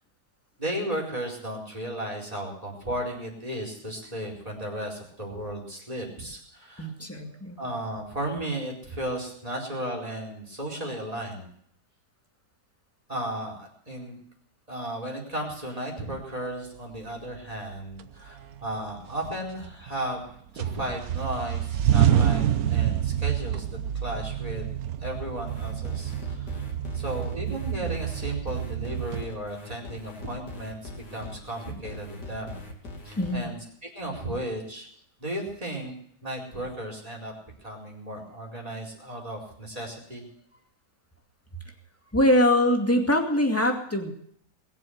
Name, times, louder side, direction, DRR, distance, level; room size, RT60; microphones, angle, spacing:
voice 1, 0.6-6.9 7.6-11.5 13.1-14.2 14.7-20.2 20.5-23.6 24.0-24.7 25.0-26.6 26.9-30.8 31.1-32.6 33.0-33.6 33.9-34.9 35.2-35.9 36.2-37.3 37.6-40.2, right 1 dB, 20° right, -1 dB, 4.6 m, -34 dB
voice 2, 6.8-7.6 33.2-33.5 42.1-44.1, left 1 dB, 10° left, 3 dB, 2.3 m, -23 dB
sound 1, 17.4-17.5 18.0-18.7 19.1-20.2 20.6-29.2, right 10 dB, 65° right, 1.2 m, -27 dB
sound 2, 25.5-33.4, left 2 dB, 80° left, 3.1 m, -41 dB
21.5 x 7.5 x 7.9 m, 0.66 s
omnidirectional pair, 1.8 m